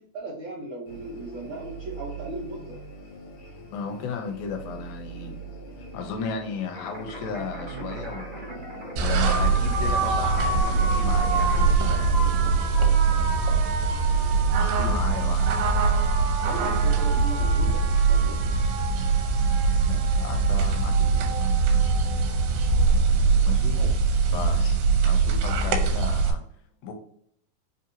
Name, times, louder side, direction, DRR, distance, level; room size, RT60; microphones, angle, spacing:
voice 1, 0.1-2.8 11.8-13.4 16.4-18.5 23.7-24.0, right 2 dB, 70° right, -7 dB, 1.2 m, -38 dB
sound 1, 0.9-14.5, right 2 dB, 65° left, 2.1 m, -42 dB
voice 2, 3.7-5.4 5.9-8.4 9.0-12.1 14.6-15.7 19.9-21.5 23.4-23.8 24.3-26.4 26.8-26.9, left 6 dB, 85° left, 3 dB, 2.4 m, -35 dB
sound 2, 6.7-11.7, equal, 45° right, 0.9 m, -40 dB
sound 3, 9.0-26.3, right 4 dB, 85° right, 2.4 m, -22 dB
5.3 x 2.8 x 2.6 m, 0.68 s
omnidirectional pair, 4.2 m